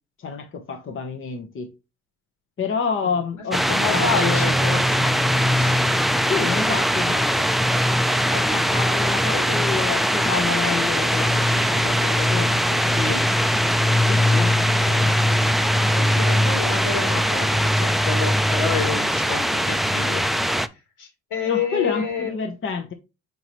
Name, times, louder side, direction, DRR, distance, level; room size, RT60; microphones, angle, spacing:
voice 1, 0.2-1.7 2.6-4.6 6.3-7.5 8.3-13.2 14.1-14.5 21.5-22.9, left 5 dB, 45° left, 1.0 m, -29 dB
sound 1, 3.5-20.7, equal, ahead, 0.4 m, -20 dB
voice 2, 3.7-5.1 5.5-5.9 8.4-8.6 12.9-13.2 14.4-15.1 16.0-20.4 21.0-22.3, left 5 dB, 85° left, 2.9 m, -29 dB
5.8 x 5.4 x 2.9 m
cardioid pair, 90°, 30 cm